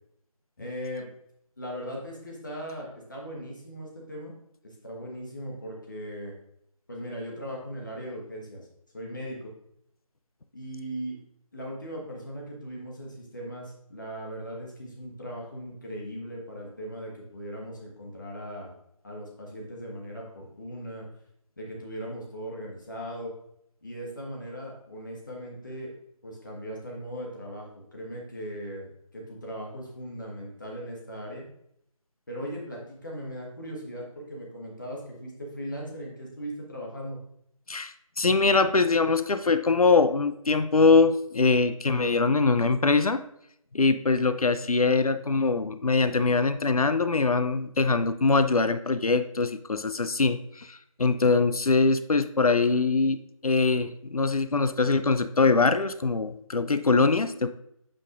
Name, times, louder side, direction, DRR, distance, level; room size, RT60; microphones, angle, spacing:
voice 1, 0.6-1.1 1.6-4.3 4.6-6.3 6.9-8.7 8.9-9.5 10.5-11.2 11.5-18.7 19.0-21.1 21.6-23.3 23.8-25.9 26.2-31.5 32.3-37.2, equal, 35° left, -2 dB, 1.4 m, -38 dB
voice 2, 37.7-43.2 43.7-57.5, left 4 dB, 85° left, 11 dB, 0.6 m, -23 dB
8.5 x 5.3 x 2.4 m, 0.73 s
figure-of-eight pair, 170°, 18 cm